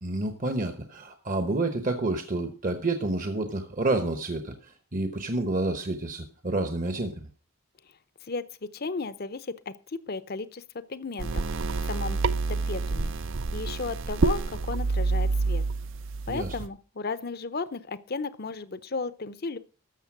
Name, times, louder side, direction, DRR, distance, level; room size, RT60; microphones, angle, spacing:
voice 1, 0.0-7.3 16.3-16.5, right 2 dB, 35° right, 8 dB, 0.9 m, -29 dB
voice 2, 8.7-10.6 10.9-11.4 11.9-12.2 12.5-13.1 13.5-15.6 16.3-19.6, left 4 dB, 45° left, 15 dB, 0.7 m, -34 dB
sound 1, 11.2-16.7, right 3 dB, 60° right, 0.5 m, -28 dB
13.5 x 6.8 x 6.0 m, 0.38 s
head